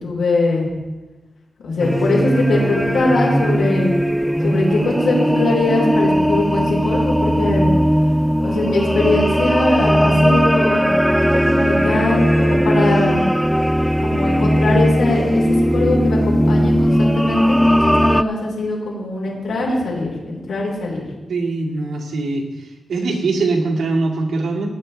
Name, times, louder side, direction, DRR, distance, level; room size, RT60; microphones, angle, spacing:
voice 1, 0.0-0.7 1.6-3.9 4.4-7.7 8.4-13.3 14.0-21.0, left 2 dB, 90° left, -3 dB, 4.3 m, -21 dB
sound 1, 1.8-18.2, equal, ahead, 0.3 m, -17 dB
voice 2, 21.3-22.4 22.9-24.8, right 3 dB, 80° right, -1 dB, 2.1 m, -21 dB
18.5 x 9.6 x 3.4 m, 1.1 s
wide cardioid pair, 110°, 0 cm